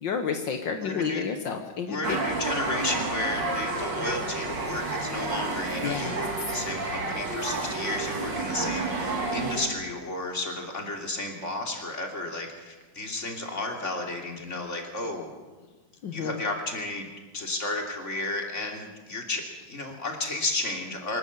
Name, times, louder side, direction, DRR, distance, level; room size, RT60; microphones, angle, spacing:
voice 1, 0.0-2.2 5.8-6.2 8.6-8.7 16.0-16.4, left 6 dB, 75° left, 5 dB, 2.0 m, -30 dB
voice 2, 0.8-1.2 1.9-15.3 16.1-21.2, left 2 dB, 40° left, 2 dB, 3.4 m, -33 dB
sound 1, 2.0-9.7, right 3 dB, 70° right, 3.3 m, -30 dB
25.0 x 13.5 x 8.4 m, 1.3 s
omnidirectional pair, 2.0 m